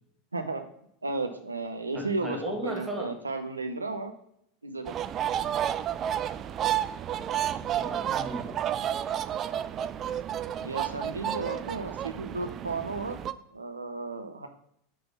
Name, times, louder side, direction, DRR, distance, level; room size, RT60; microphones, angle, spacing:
voice 1, 1.0-2.4 2.6-4.1 4.6-4.9 10.6-13.2 13.5-14.5, right 3 dB, 90° right, 6 dB, 0.5 m, -33 dB
voice 2, 1.9-3.2 7.2-8.7, right 1 dB, 10° right, 2 dB, 1.4 m, -37 dB
sound 1, 4.8-13.3, right 10 dB, 35° right, 0.3 m, -31 dB
6.1 x 3.4 x 5.5 m, 0.72 s
figure-of-eight pair, 85°, 0 cm